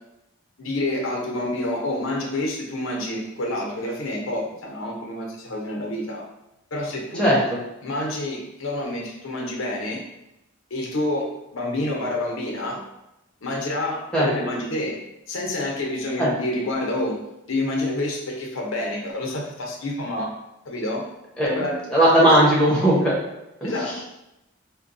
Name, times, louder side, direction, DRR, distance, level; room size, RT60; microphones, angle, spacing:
voice 1, 0.6-6.2 6.7-7.3 7.8-10.0 10.7-12.8 13.4-15.0 15.3-17.2 17.5-20.3 20.6-21.0 21.4-21.8 22.2-22.5 23.6-23.9, left 1 dB, 80° left, -1 dB, 0.7 m, -28 dB
voice 2, 21.9-23.2 23.6-24.1, right 1 dB, 5° left, -7 dB, 0.9 m, -18 dB
4.3 x 2.2 x 2.6 m, 0.91 s
head